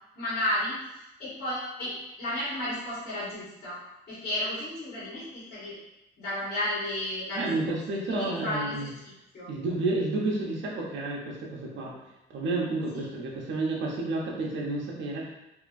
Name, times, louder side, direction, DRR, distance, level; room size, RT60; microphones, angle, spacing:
voice 1, 0.2-3.8 4.1-5.8 6.2-7.8 8.1-8.9 9.3-9.5 12.9-13.0, left 1 dB, 55° left, -10 dB, 1.3 m, -33 dB
voice 2, 7.3-8.9 9.5-11.9 12.3-15.3, right 2 dB, 70° right, -3 dB, 0.8 m, -30 dB
2.9 x 2.5 x 2.4 m, 0.90 s
cardioid pair, 90°, 20 cm